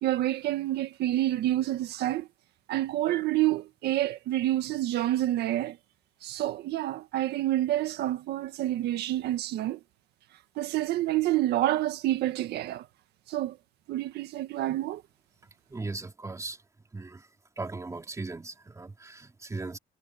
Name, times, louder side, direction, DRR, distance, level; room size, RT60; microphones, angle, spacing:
voice 1, 0.0-2.3 2.7-5.8 6.2-9.8 10.6-12.9 13.3-13.6 13.9-15.0, right 14 dB, 75° right, 1.8 m, -28 dB
voice 2, 15.7-16.6 16.9-17.2 17.6-19.8, right 3 dB, 20° right, 3.4 m, -38 dB
cardioid pair, 110°, 17 cm